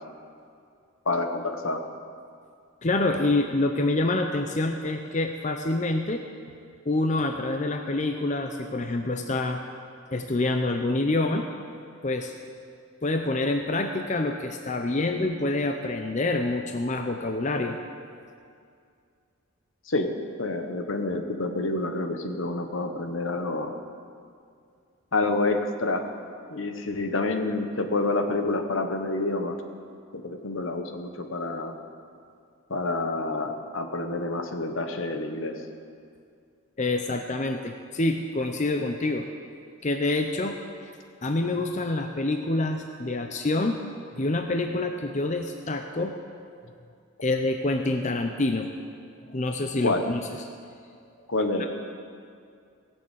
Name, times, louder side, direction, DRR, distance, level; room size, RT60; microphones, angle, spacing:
voice 1, 1.0-1.8 19.9-20.1 20.4-23.7 25.1-26.1 26.5-29.6 30.1-31.7 32.7-35.6 44.7-44.9 49.8-50.1 51.3-51.7, left 2 dB, 70° left, 6 dB, 1.2 m, -28 dB
voice 2, 2.8-6.2 6.8-9.6 10.1-11.5 12.0-12.3 13.0-17.8 36.8-39.3 39.8-40.9 41.2-43.8 44.2-46.1 47.2-48.7 49.3-50.2 51.6-51.7, left 2 dB, 35° left, 5 dB, 0.6 m, -27 dB
18.0 x 7.1 x 8.2 m, 2.3 s
head